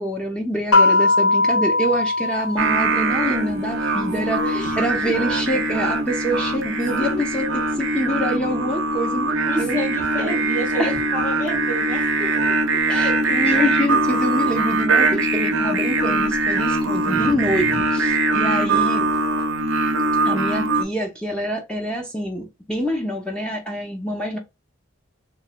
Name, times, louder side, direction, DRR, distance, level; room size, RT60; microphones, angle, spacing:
voice 1, 0.0-9.8 10.2-10.4 10.8-10.9 12.9-19.4 20.2-24.4, equal, 5° left, 0.6 m, -26 dB
sound 1, 0.7-3.4, left 2 dB, 90° left, 0.8 m, -19 dB
Singing, 2.6-20.8, right 2 dB, 65° right, 0.6 m, -22 dB
voice 2, 4.2-5.1 7.0-7.2 9.4-12.5 13.2-13.4, equal, 40° left, 1.5 m, -30 dB
3.1 x 2.8 x 2.2 m
head